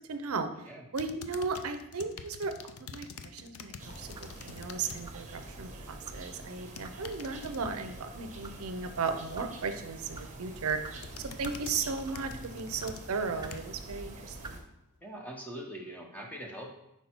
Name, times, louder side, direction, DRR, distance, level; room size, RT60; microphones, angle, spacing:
voice 1, 0.1-14.6, right 4 dB, 70° right, 8 dB, 0.5 m, -36 dB
sound 1, 0.9-5.0 5.4-5.8 6.6-7.6 10.0-10.3 10.7-13.9 14.4-14.5, left 6 dB, 75° left, 0.5 m, -46 dB
sound 2, 3.8-14.6, right 2 dB, 35° right, 1.0 m, -46 dB
sound 3, 4.1-4.4 5.0-5.3 6.0-6.2 6.8-7.0 7.6-7.8 8.4-8.6 9.2-9.5 10.1-10.3 10.8-11.0 11.4-11.7 12.0-12.3 12.8-12.9 13.4-13.6 14.4-14.6, right 3 dB, 20° right, 0.3 m, -46 dB
voice 2, 15.0-16.8, right 1 dB, 5° left, 0 dB, 0.9 m, -42 dB
5.5 x 4.5 x 4.4 m, 0.85 s
head